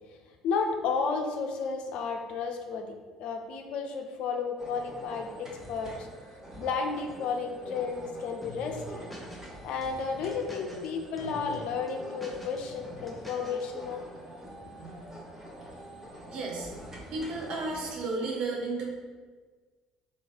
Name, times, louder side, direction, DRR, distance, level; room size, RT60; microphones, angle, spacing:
voice 1, 0.4-6.1 6.6-9.1 9.6-14.0 14.4-14.5, left 5 dB, 60° left, 4 dB, 0.5 m, -32 dB
sound 1, 4.6-17.9, right 1 dB, 25° right, 1.4 m, -45 dB
sound 2, 8.4-9.5 9.8-10.9 11.2-11.6 11.9-13.6, left 1 dB, 5° left, 1.1 m, -46 dB
voice 2, 16.3-16.7 17.1-18.9, right 3 dB, 55° right, -1 dB, 1.0 m, -33 dB
3.1 x 3.1 x 4.3 m, 1.4 s
figure-of-eight pair, 55°, 2 cm